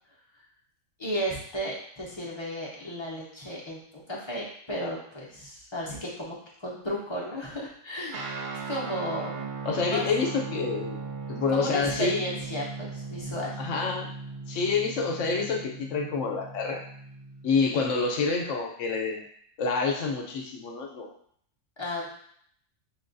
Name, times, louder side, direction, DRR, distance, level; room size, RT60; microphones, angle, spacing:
voice 1, 1.0-8.2 8.7-9.5 9.9-10.1 11.5-13.6 21.8-22.1, equal, 30° left, -4 dB, 0.5 m, -34 dB
Guitar, 8.1-17.9, right 4 dB, 60° right, 0.8 m, -38 dB
voice 2, 9.6-11.0 11.3-12.2 13.6-14.1 14.5-16.8 17.4-19.2 19.6-21.1, left 4 dB, 70° left, 1 dB, 0.9 m, -27 dB
5.8 x 2.3 x 2.5 m, 0.64 s
omnidirectional pair, 1.4 m